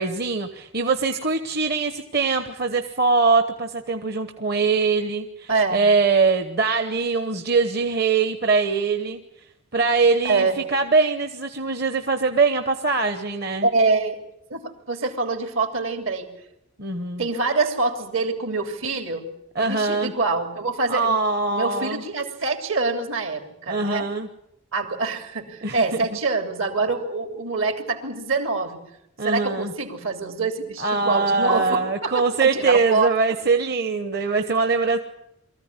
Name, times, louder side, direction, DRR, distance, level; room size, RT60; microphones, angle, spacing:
voice 1, 0.0-9.2 9.7-13.7 16.8-17.2 19.5-20.1 20.9-22.0 23.7-24.3 25.6-25.8 29.2-29.7 30.8-35.0, right 4 dB, 45° right, 7 dB, 1.1 m, -22 dB
voice 2, 5.5-5.8 10.2-10.6 13.6-14.2 14.5-16.3 17.2-19.3 19.6-21.2 21.5-24.1 24.7-28.8 29.2-33.1, right 3 dB, 70° right, 6 dB, 3.2 m, -25 dB
23.5 x 14.5 x 9.8 m, 0.81 s
head